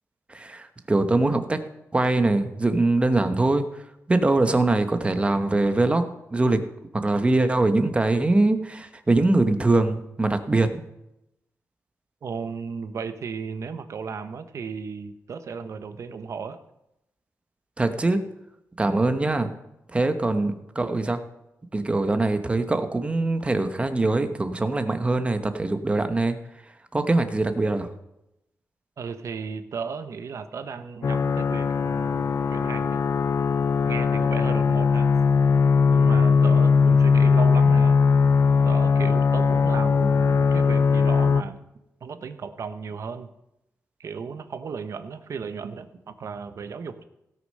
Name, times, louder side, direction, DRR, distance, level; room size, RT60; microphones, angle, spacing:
voice 1, 0.3-1.6 1.9-3.7 4.1-6.0 6.3-6.6 6.9-10.9 17.8-18.2 18.8-19.5 19.9-21.2 21.7-26.4 26.9-27.9, right 2 dB, 20° right, 8 dB, 1.0 m, -22 dB
voice 2, 12.2-16.6 29.0-33.0 33.8-35.1 35.9-38.0 38.6-41.6 42.0-43.3 44.0-47.0, right 5 dB, 65° right, 10 dB, 0.9 m, -35 dB
sound 1, 31.0-41.4, left 5 dB, 55° left, 0.5 m, -20 dB
17.0 x 6.3 x 5.5 m, 0.88 s
wide cardioid pair, 120°, 6 cm